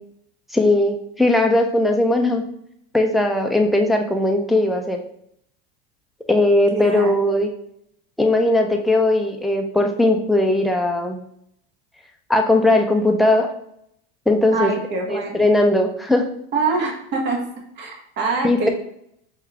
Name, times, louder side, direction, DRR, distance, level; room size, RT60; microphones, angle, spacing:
voice 1, 0.5-2.4 2.9-5.0 6.3-7.5 8.2-11.2 12.3-13.5 14.3-14.7 15.1-16.3 18.4-18.7, left 2 dB, ahead, 2 dB, 0.4 m, -18 dB
voice 2, 6.7-7.1 14.5-15.4 16.5-17.4 17.8-18.7, right 4 dB, 35° right, 2 dB, 1.1 m, -24 dB
4.7 x 3.6 x 2.8 m, 0.71 s
supercardioid pair, 120°, 30 cm